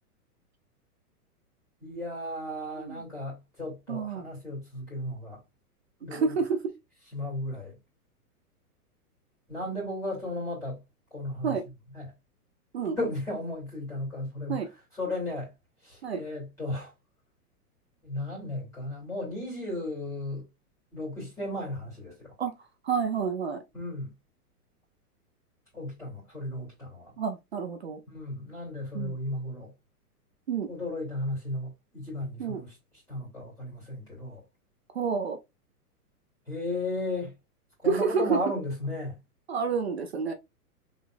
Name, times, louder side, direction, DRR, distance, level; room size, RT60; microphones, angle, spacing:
voice 1, 1.8-5.4 6.0-6.4 7.1-7.8 9.5-10.8 11.1-11.5 11.9-12.1 13.0-14.7 14.9-15.5 15.8-16.9 18.0-20.4 20.9-22.3 23.7-24.1 25.7-27.2 28.1-29.7 30.7-32.8 33.1-34.4 36.5-37.3 37.8-39.2, left 1 dB, 5° left, 2.5 m, -35 dB
voice 2, 3.9-4.2 6.1-6.6 11.4-11.6 12.7-13.0 14.5-14.7 16.0-16.2 22.4-22.5 22.8-23.6 27.2-28.0 28.9-29.1 30.5-30.7 32.4-32.6 34.9-35.4 37.9-38.4 39.5-40.3, right 5 dB, 45° right, 0.5 m, -29 dB
3.9 x 3.4 x 2.5 m
hypercardioid pair, 175°, 47 cm